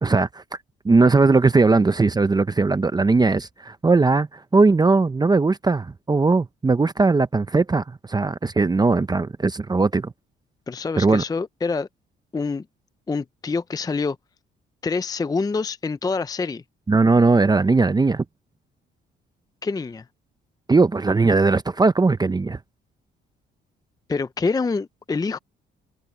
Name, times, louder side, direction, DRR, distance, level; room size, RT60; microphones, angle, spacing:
voice 1, 0.0-0.4 0.8-10.1 11.0-11.2 16.9-18.2 20.7-22.6, right 3 dB, 20° right, 0.7 m, -19 dB
voice 2, 10.7-11.9 12.3-12.7 13.1-14.2 14.8-16.6 19.6-20.1 24.1-25.4, left 4 dB, 20° left, 0.5 m, -26 dB
cardioid pair, 90°, 20 cm